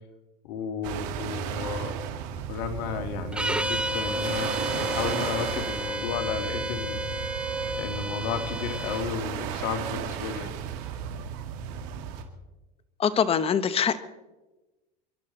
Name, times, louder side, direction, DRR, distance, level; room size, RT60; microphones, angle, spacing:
voice 1, 0.4-1.9 2.5-7.0 7.7-10.5, left 6 dB, 65° left, 5 dB, 2.5 m, -33 dB
sound 1, 0.8-12.2, right 9 dB, 70° right, 2.3 m, -34 dB
sound 2, 3.3-9.1, right 2 dB, 5° right, 0.5 m, -33 dB
Wind instrument woodwind instrument, 3.3-7.8, left 2 dB, 35° right, 4.1 m, -35 dB
voice 2, 13.0-14.0, left 7 dB, 30° left, 14 dB, 1.1 m, -23 dB
29.0 x 12.0 x 4.1 m, 1.1 s
supercardioid pair, 115°, 21 cm